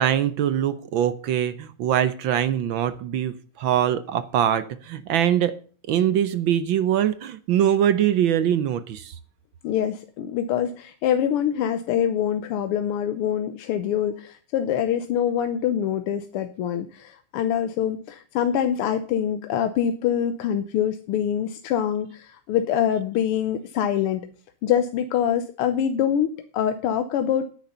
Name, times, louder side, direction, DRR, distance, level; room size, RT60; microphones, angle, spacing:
voice 1, 0.0-5.5 5.9-9.1, right 10 dB, 70° right, 13 dB, 1.4 m, -23 dB
voice 2, 9.6-24.3 24.6-27.5, left 9 dB, 85° left, 8 dB, 1.7 m, -25 dB
9.6 x 9.3 x 5.5 m, 0.41 s
omnidirectional pair, 2.4 m